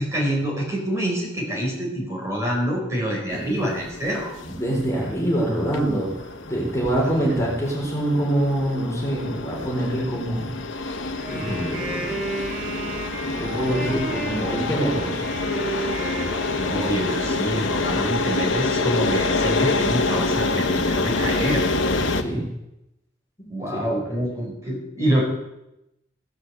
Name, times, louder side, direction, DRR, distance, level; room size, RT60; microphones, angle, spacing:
voice 1, 0.0-4.3 7.1-7.3 16.6-21.6 23.5-25.2, right 1 dB, 15° right, -2 dB, 4.6 m, -26 dB
sound 1, 3.3-22.2, left 3 dB, 85° left, 1.3 m, -27 dB
voice 2, 4.5-10.5 11.3-12.3 13.3-15.3 22.2-22.5 23.4-24.1, right 1 dB, 15° left, -3 dB, 4.0 m, -25 dB
Wind instrument woodwind instrument, 11.2-17.4, right 1 dB, 55° right, 7.9 m, -33 dB
16.5 x 10.5 x 8.2 m, 0.89 s
head